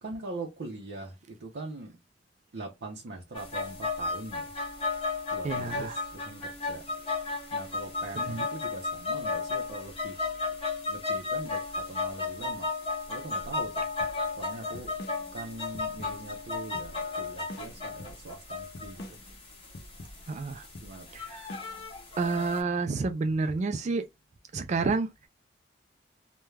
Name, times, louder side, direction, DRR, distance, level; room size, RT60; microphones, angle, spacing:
voice 1, 0.0-2.0 2.5-4.5 5.3-6.8 7.5-10.4 10.9-12.7 13.1-13.9 14.4-14.9 15.3-19.2 20.8-21.1, right 2 dB, 80° right, 0.6 m, -42 dB
sound 1, 3.3-22.6, left 3 dB, 35° left, 1.2 m, -34 dB
voice 2, 5.4-6.0 8.2-8.5 20.3-20.6 21.1-21.4 22.2-24.1 24.5-25.1, right 4 dB, 40° right, 0.3 m, -29 dB
sound 2, 14.0-21.9, left 1 dB, 65° left, 0.6 m, -47 dB
3.1 x 2.2 x 2.3 m
head